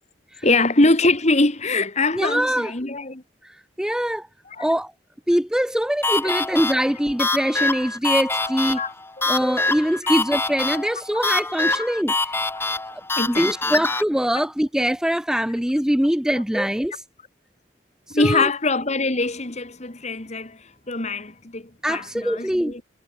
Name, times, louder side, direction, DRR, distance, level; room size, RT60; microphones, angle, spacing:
voice 1, 0.4-3.2 4.6-4.7 8.4-9.3 10.0-10.1 11.7-11.9 13.2-13.8 16.3-16.4 18.1-22.8, left 2 dB, 35° left, 1.8 m, -23 dB
voice 2, 2.1-2.7 3.4-4.3 4.6-4.9 5.3-8.8 9.3-12.1 12.9-13.0 13.3-17.0 18.1-18.5 21.8-22.7, equal, 5° right, 0.5 m, -23 dB
sound 1, 6.0-14.0, left 3 dB, 10° left, 1.6 m, -25 dB
head